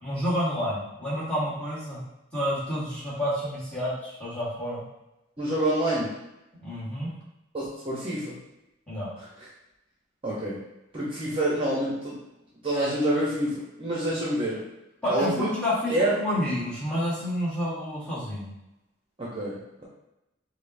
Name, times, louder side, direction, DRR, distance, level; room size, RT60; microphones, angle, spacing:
voice 1, 0.0-2.0 2.3-4.8 6.6-7.1 8.9-9.1 15.0-18.5, equal, 5° left, -8 dB, 1.3 m, -29 dB
voice 2, 5.4-6.1 7.5-8.3 9.4-9.5 10.2-10.6 10.9-12.2 12.6-14.6 15.1-15.5 15.9-16.1 19.2-19.9, right 1 dB, 30° right, -7 dB, 0.7 m, -27 dB
5.3 x 2.0 x 2.6 m, 0.92 s
head